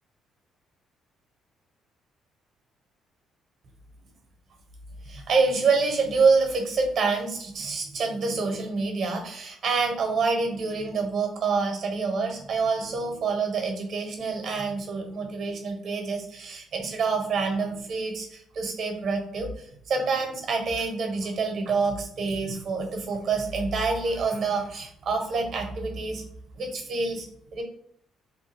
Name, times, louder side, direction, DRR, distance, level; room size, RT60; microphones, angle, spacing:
voice 1, 5.0-26.2 26.6-27.3 27.5-27.6, right 4 dB, 55° right, 3 dB, 0.9 m, -27 dB
2.9 x 2.2 x 3.4 m, 0.65 s
cardioid pair, 95°, 0 cm